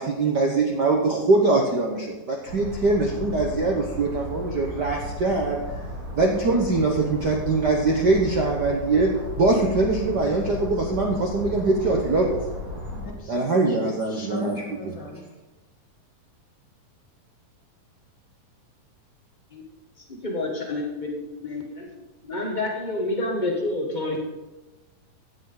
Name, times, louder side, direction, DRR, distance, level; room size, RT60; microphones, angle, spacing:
voice 1, 0.0-5.6 6.2-9.1 9.4-12.3 13.3-14.5 14.8-14.9, right 3 dB, 85° right, 0 dB, 0.9 m, -22 dB
sound 1, 2.5-13.1, equal, 50° right, 4.5 m, -35 dB
voice 2, 12.9-13.8 14.1-15.3, left 2 dB, 40° left, -1 dB, 2.6 m, -37 dB
voice 3, 20.0-21.9 22.3-24.2, left 2 dB, 75° left, -1 dB, 0.4 m, -28 dB
16.0 x 10.0 x 4.0 m, 1.1 s
omnidirectional pair, 3.9 m